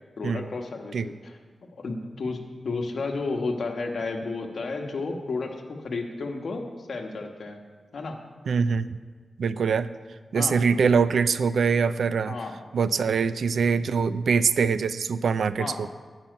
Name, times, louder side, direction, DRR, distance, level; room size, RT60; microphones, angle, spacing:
voice 1, 0.2-1.4 1.7-7.6 7.9-8.2 10.3-10.6 12.3-12.6 15.6-15.8, left 3 dB, 65° left, 3 dB, 1.3 m, -32 dB
voice 2, 8.5-9.0 9.4-9.9 10.3-12.4 12.7-15.9, right 5 dB, 85° right, 14 dB, 0.4 m, -23 dB
12.0 x 5.7 x 9.1 m, 1.5 s
wide cardioid pair, 125°, 0 cm